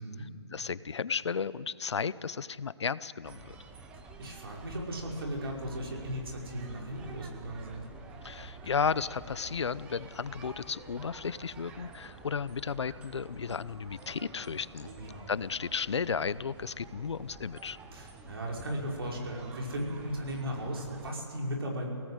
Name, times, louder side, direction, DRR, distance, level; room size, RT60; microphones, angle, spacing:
voice 1, 0.0-3.6 8.2-14.9 15.3-17.8, left 6 dB, 75° left, 17 dB, 0.7 m, -34 dB
sound 1, 3.2-21.1, right 3 dB, 5° right, 0.7 m, -49 dB
voice 2, 4.2-7.9 14.8-15.3 17.9-21.9, equal, 60° right, -1 dB, 5.5 m, -36 dB
26.5 x 18.0 x 8.1 m, 2.4 s
hypercardioid pair, 170°, 15 cm